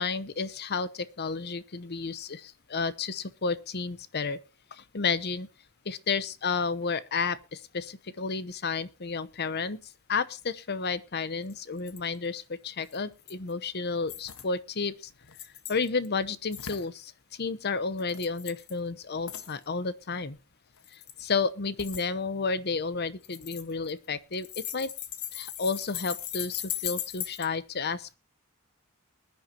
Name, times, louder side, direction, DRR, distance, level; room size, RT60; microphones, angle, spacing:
voice 1, 0.0-4.4 4.7-5.5 5.8-9.8 10.1-15.1 15.7-20.4 20.9-24.9 25.3-28.2, left 4 dB, 50° left, 0.9 m, -31 dB
sound 1, 11.5-11.6 11.8-12.0 12.9-13.5 14.1-14.5 15.2-16.1 16.5-16.9 18.0-18.7 19.3-19.6 20.8-21.2 21.8-22.1 23.2-24.1 24.3-27.5, left 11 dB, 80° left, 1.3 m, -38 dB
21.0 x 10.5 x 2.8 m
head